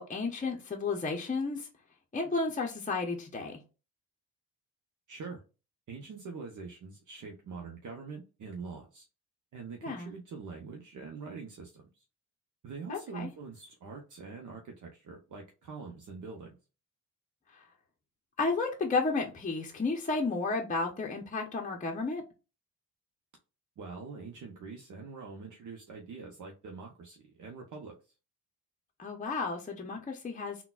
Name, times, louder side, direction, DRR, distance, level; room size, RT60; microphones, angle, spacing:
voice 1, 0.0-1.7 2.1-3.6 9.8-10.1 12.9-13.3 17.5-17.6 18.4-22.2 29.0-30.6, left 3 dB, 20° left, 0.7 m, -32 dB
voice 2, 5.1-5.4 5.9-9.1 9.5-12.0 12.6-16.6 23.8-27.9, right 4 dB, 55° right, 0.8 m, -44 dB
3.8 x 2.3 x 2.3 m
supercardioid pair, 65°, 37 cm